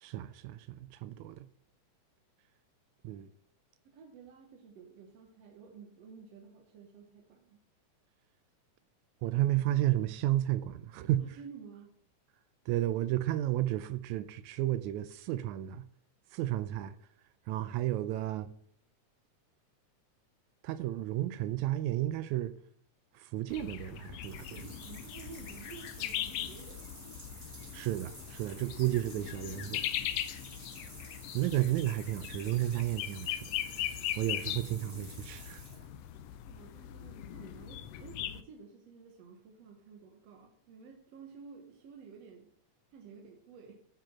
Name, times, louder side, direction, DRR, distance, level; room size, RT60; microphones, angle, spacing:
voice 1, 0.0-1.5 3.0-3.3 9.2-11.2 12.7-15.9 16.3-17.0 17.5-18.5 20.6-22.5 23.1-24.6 27.7-29.8 31.3-35.6, right 14 dB, 80° right, 1.9 m, -32 dB
voice 2, 3.9-7.6 11.3-11.9 24.5-26.9 36.5-42.5 42.9-43.7, right 5 dB, 65° right, 2.1 m, -52 dB
sound 1, 23.5-38.4, left 12 dB, 80° left, 1.5 m, -40 dB
sound 2, 23.9-36.3, equal, 10° right, 2.1 m, -51 dB
9.0 x 5.0 x 5.9 m
omnidirectional pair, 3.4 m